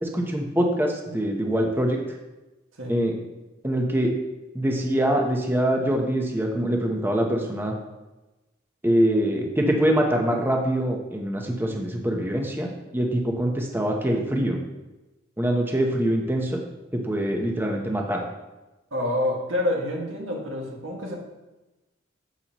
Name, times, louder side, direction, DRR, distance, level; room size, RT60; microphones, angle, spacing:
voice 1, 0.0-2.0 2.9-3.1 3.6-4.1 4.5-7.7 8.8-14.6 15.4-16.6 16.9-18.2, right 1 dB, 10° right, 1 dB, 0.8 m, -24 dB
voice 2, 18.9-21.1, left 1 dB, 85° right, -2 dB, 1.9 m, -27 dB
8.1 x 7.7 x 3.0 m, 1.1 s
head